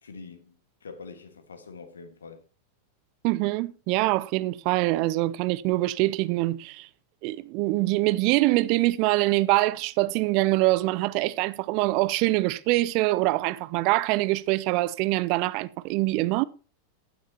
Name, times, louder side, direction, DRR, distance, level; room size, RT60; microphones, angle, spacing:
voice 1, 0.0-2.4, left 4 dB, 70° left, 1.6 m, -45 dB
voice 2, 3.2-6.9 7.2-16.4, right 19 dB, 45° right, 0.5 m, -24 dB
15.0 x 9.9 x 2.9 m
figure-of-eight pair, 90°, 0 cm